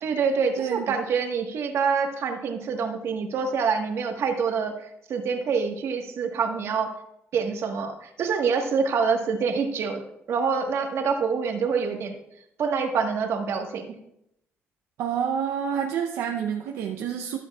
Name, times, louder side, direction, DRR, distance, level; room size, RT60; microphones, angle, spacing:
voice 1, 0.0-6.9 7.3-10.0 10.3-12.2 12.6-14.0, right 5 dB, 65° right, 4 dB, 1.4 m, -26 dB
voice 2, 0.6-0.9 15.0-17.4, right 8 dB, 85° right, 3 dB, 0.7 m, -28 dB
13.0 x 10.5 x 2.4 m, 0.79 s
cardioid pair, 90°, 5 cm